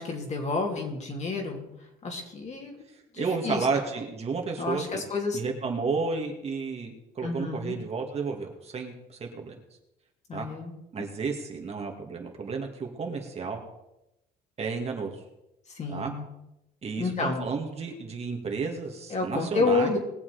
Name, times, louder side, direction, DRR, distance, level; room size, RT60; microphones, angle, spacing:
voice 1, 0.0-1.6 2.0-2.8 3.1-3.7 4.6-5.4 7.2-7.7 10.3-10.7 15.7-16.2 17.0-17.5 19.1-20.0, left 3 dB, 40° left, 1 dB, 3.2 m, -29 dB
voice 2, 2.9-5.0 5.3-9.6 10.3-10.5 10.9-13.6 14.6-15.2 15.9-16.1 16.8-20.0, right 4 dB, 40° right, 2 dB, 2.4 m, -32 dB
20.5 x 7.2 x 5.1 m, 0.90 s
cardioid pair, 110°, 17 cm